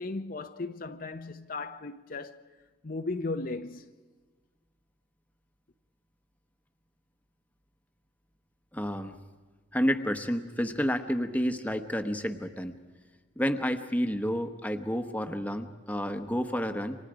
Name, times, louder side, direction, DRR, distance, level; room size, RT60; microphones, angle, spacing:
voice 1, 0.0-2.4 2.8-3.9, left 3 dB, 45° left, 0.8 m, -36 dB
voice 2, 8.7-9.2 9.7-12.7 13.4-17.0, equal, 10° left, 1.1 m, -30 dB
30.0 x 26.0 x 5.0 m
head